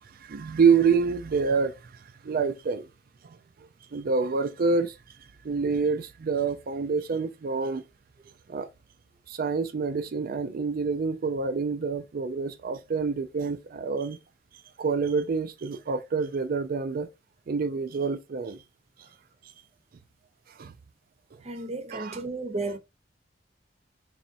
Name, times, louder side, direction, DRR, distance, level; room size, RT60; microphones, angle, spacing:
voice 1, 0.1-1.9 2.2-2.9 3.2-3.4 3.9-5.0 5.4-7.8 8.5-8.7 9.3-14.2 14.8-17.1 17.5-18.6 20.6-20.7 21.9-22.2, right 5 dB, 55° right, 0.4 m, -27 dB
voice 2, 21.4-22.8, right 2 dB, 35° right, 0.8 m, -33 dB
4.0 x 3.2 x 2.6 m
head